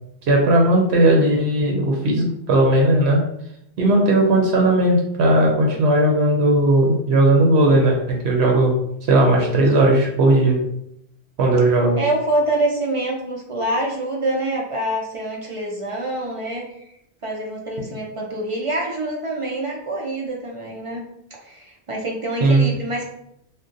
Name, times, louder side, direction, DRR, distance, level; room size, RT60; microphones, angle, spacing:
voice 1, 0.3-3.2 3.8-8.0 8.2-8.7 9.1-10.6 11.4-12.0 22.4-22.6, right 1 dB, 85° right, 0 dB, 0.9 m, -16 dB
voice 2, 9.3-9.6 12.0-16.8 17.2-21.0 21.3-23.0, right 1 dB, 50° right, -1 dB, 0.4 m, -26 dB
2.6 x 2.1 x 3.7 m, 0.74 s
omnidirectional pair, 1.1 m